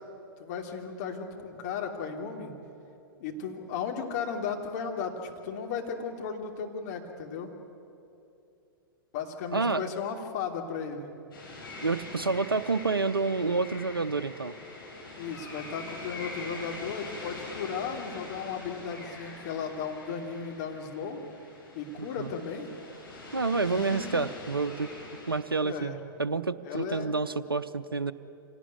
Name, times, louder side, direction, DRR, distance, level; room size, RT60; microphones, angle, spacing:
voice 1, 0.4-2.5 3.2-7.5 9.1-11.1 15.2-21.2 21.7-22.7 23.7-24.2 25.6-26.0 26.6-27.1, left 6 dB, 50° left, 2 dB, 3.1 m, -35 dB
voice 2, 9.5-9.8 11.8-14.5 22.2-22.3 23.3-24.9 25.3-25.9 26.2-28.1, right 4 dB, 85° right, 11 dB, 0.7 m, -28 dB
sound 1, 11.3-25.4, left 2 dB, 70° left, 7.7 m, -43 dB
26.0 x 18.5 x 9.4 m, 2.7 s
figure-of-eight pair, 100°, 12 cm